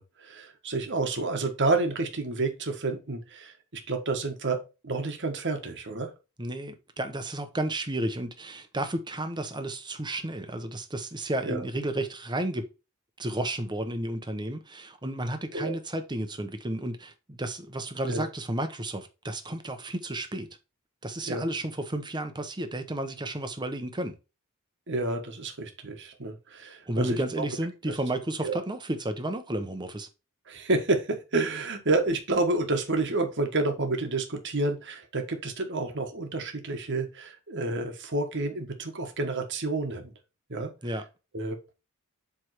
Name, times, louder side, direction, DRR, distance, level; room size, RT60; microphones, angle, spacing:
voice 1, 0.0-6.1 11.4-11.6 15.5-15.7 18.1-18.3 21.3-21.4 24.9-27.4 28.4-28.6 30.5-40.1 40.5-40.7 41.3-41.6, right 2 dB, 55° right, 1.5 m, -29 dB
voice 2, 6.4-12.7 13.2-20.5 21.0-24.2 26.9-30.1 40.8-41.0, right 1 dB, 20° right, 1.0 m, -32 dB
7.8 x 3.5 x 4.7 m
head